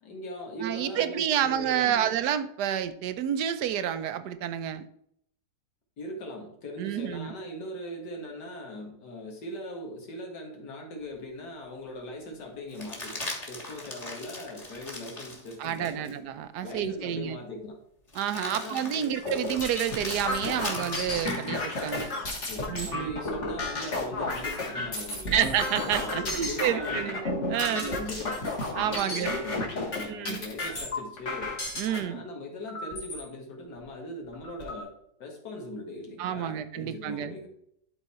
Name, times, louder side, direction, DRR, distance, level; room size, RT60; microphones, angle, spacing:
voice 1, 0.0-2.1 6.0-16.2 16.6-17.8 18.3-19.2 22.4-25.5 25.8-27.2 27.6-28.5 28.8-31.5 31.8-34.9 35.2-37.5, left 1 dB, 85° left, 1 dB, 2.3 m, -40 dB
voice 2, 0.6-4.9 6.8-7.3 15.6-17.4 18.2-22.1 22.7-23.2 25.3-27.9 28.7-29.4 30.0-30.4 31.8-32.2 36.2-37.3, right 10 dB, 85° right, 12 dB, 1.2 m, -29 dB
sound 1, 11.1-11.2 12.7-16.2 16.7-16.8 18.1-22.2 24.4-25.2, left 1 dB, 25° left, 1.5 m, -40 dB
sound 2, 19.2-32.0 32.7-33.2 33.8-33.9 34.2-34.8, left 2 dB, 45° left, 1.9 m, -32 dB
11.5 x 4.0 x 4.2 m, 0.71 s
omnidirectional pair, 1.8 m